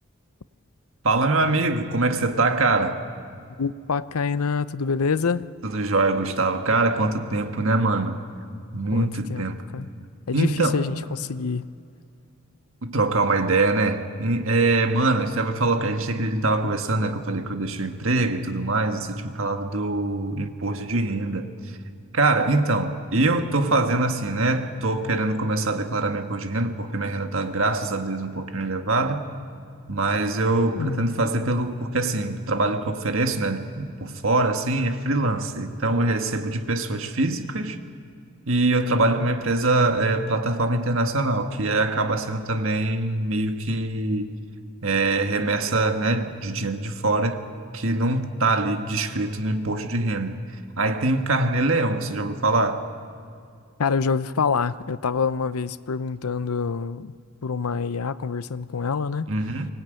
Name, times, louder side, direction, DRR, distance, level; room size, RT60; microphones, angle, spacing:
voice 1, 1.0-3.0 5.6-8.2 8.7-9.6 10.3-10.8 12.8-21.5 22.1-29.2 29.9-37.8 38.5-44.3 44.8-47.4 47.7-50.4 50.8-52.9 59.3-59.7, right 2 dB, 65° right, 1.6 m, -23 dB
voice 2, 3.6-5.5 8.9-9.5 9.7-9.9 10.3-11.7 30.8-31.1 53.8-57.1 57.4-59.3, left 5 dB, 85° left, 0.7 m, -26 dB
24.5 x 20.0 x 9.0 m
head